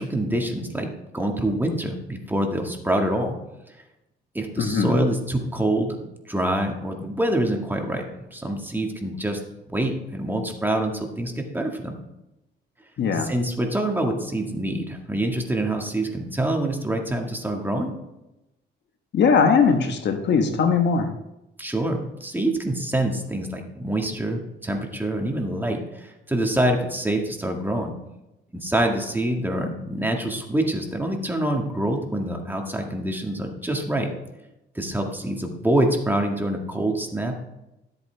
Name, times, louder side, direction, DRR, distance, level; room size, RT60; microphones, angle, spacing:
voice 1, 0.0-3.4 4.3-6.0 6.3-9.4 9.7-12.0 13.1-17.9 21.6-27.9 28.5-34.1 34.8-37.4, right 1 dB, 10° right, 2 dB, 1.8 m, -26 dB
voice 2, 4.6-4.9 13.0-13.3 19.1-21.1, left 5 dB, 60° left, 5 dB, 1.3 m, -20 dB
13.0 x 8.3 x 3.4 m, 0.92 s
cardioid pair, 90°, 20 cm